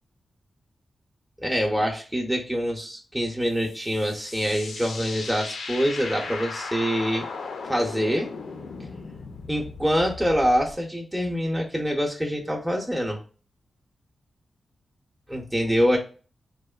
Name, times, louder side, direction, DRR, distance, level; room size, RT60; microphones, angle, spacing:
voice 1, 1.4-7.3 7.7-8.3 9.5-13.2 15.3-16.0, equal, 10° right, 0 dB, 0.6 m, -25 dB
sound 1, 3.6-10.7, left 4 dB, 85° left, 0.4 m, -37 dB
2.9 x 2.1 x 2.3 m, 0.36 s
cardioid pair, 55°, 0 cm